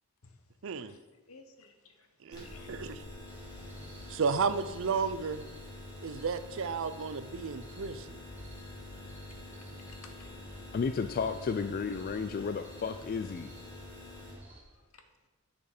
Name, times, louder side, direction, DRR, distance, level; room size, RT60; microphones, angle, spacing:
voice 1, 0.6-0.9 2.2-3.0 4.1-5.4 6.0-8.2, right 5 dB, 65° right, 13 dB, 0.5 m, -33 dB
voice 2, 1.3-2.1 2.4-2.9 3.4-3.6 9.3-9.4 9.9-10.7 14.5-14.6 14.9-15.0, left 4 dB, 75° left, 6 dB, 1.1 m, -57 dB
sound 1, 2.3-14.3, left 1 dB, 20° left, 2.3 m, -47 dB
sound 2, 3.2-14.6, equal, 10° right, 1.6 m, -53 dB
voice 3, 10.7-13.5, left 5 dB, 40° left, 9 dB, 0.3 m, -33 dB
9.0 x 6.8 x 5.0 m, 1.2 s
head